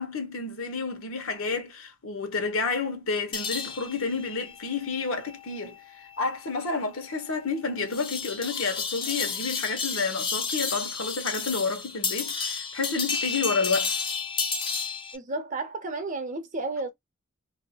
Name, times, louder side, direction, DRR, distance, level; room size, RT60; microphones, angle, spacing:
voice 1, 0.0-13.9, left 4 dB, 80° left, 1.1 m, -30 dB
sound 1, 3.3-15.2, left 5 dB, 25° left, 0.5 m, -32 dB
voice 2, 15.1-16.9, right 2 dB, 40° right, 0.8 m, -32 dB
2.7 x 2.3 x 2.7 m
head